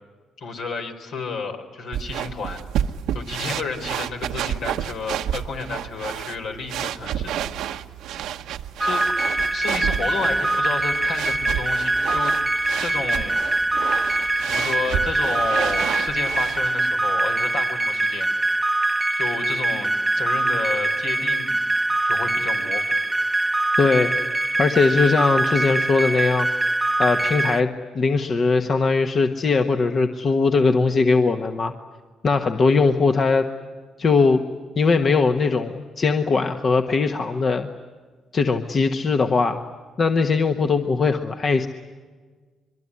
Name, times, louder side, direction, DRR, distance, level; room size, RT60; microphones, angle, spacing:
voice 1, 0.4-2.6 3.1-7.3 8.8-9.0 9.5-12.3 12.8-13.4 14.5-18.3 19.1-19.9 20.2-21.6 22.0-22.8, left 4 dB, 75° left, 4 dB, 4.3 m, -31 dB
sound 1, 1.9-16.7, right 10 dB, 90° right, 1.0 m, -30 dB
sound 2, 8.8-27.6, right 2 dB, 10° right, 0.8 m, -23 dB
voice 2, 23.8-24.1 24.6-26.5 27.0-31.7 32.2-33.5 34.0-34.4 34.8-37.7 38.3-39.6 40.0-41.7, left 4 dB, 45° left, 6 dB, 1.4 m, -20 dB
23.5 x 23.0 x 9.9 m, 1.4 s
cardioid pair, 90°, 0 cm